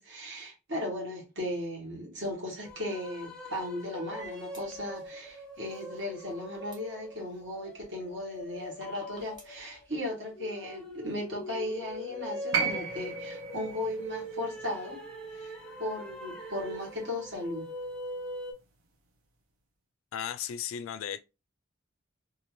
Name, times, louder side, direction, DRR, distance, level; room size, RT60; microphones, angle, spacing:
voice 1, 0.0-15.0 15.3-15.5 15.8-17.7, left 1 dB, 60° right, 1.2 m, -36 dB
sound 1, 2.6-18.5, equal, 5° left, 0.5 m, -42 dB
sound 2, 3.9-4.6 6.7-6.8 8.8-9.4, left 3 dB, 20° right, 0.9 m, -44 dB
sound 3, 12.5-16.7 17.9-18.0, right 6 dB, 85° right, 0.7 m, -35 dB
voice 2, 20.1-21.2, left 9 dB, 75° left, 0.3 m, -35 dB
2.6 x 2.4 x 2.9 m
head